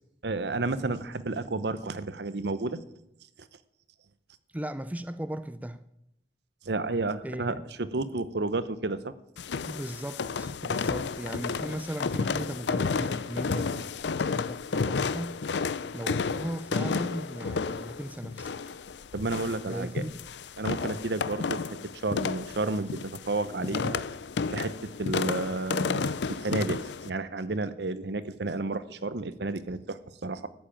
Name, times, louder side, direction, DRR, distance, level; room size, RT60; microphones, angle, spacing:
voice 1, 0.2-2.8 6.6-9.1 19.1-20.0 20.6-21.8 22.0-24.0 24.5-30.5, right 2 dB, 70° right, 0.8 m, -31 dB
voice 2, 4.5-5.8 7.2-7.6 9.7-13.8 14.2-15.4 15.9-18.5 19.7-20.1, right 1 dB, 10° right, 0.4 m, -37 dB
sound 1, 9.4-27.1, left 5 dB, 75° left, 0.5 m, -32 dB
13.0 x 7.4 x 8.9 m
head